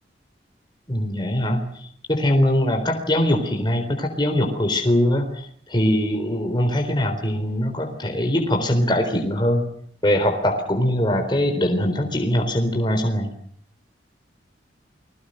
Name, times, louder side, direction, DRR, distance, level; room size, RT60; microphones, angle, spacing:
voice 1, 0.9-9.6 10.0-13.3, left 1 dB, 25° left, 4 dB, 3.9 m, -22 dB
29.5 x 22.0 x 6.5 m, 0.64 s
head